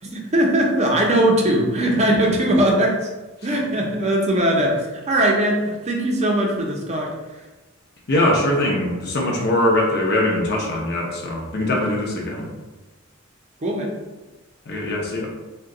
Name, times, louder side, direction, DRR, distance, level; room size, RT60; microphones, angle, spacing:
voice 1, 0.0-3.1 3.4-7.4 13.6-13.9, right 1 dB, 35° right, -1 dB, 0.5 m, -20 dB
voice 2, 8.1-12.5 14.7-15.3, left 1 dB, 50° left, 0 dB, 0.6 m, -21 dB
2.7 x 2.1 x 3.7 m, 1.2 s
head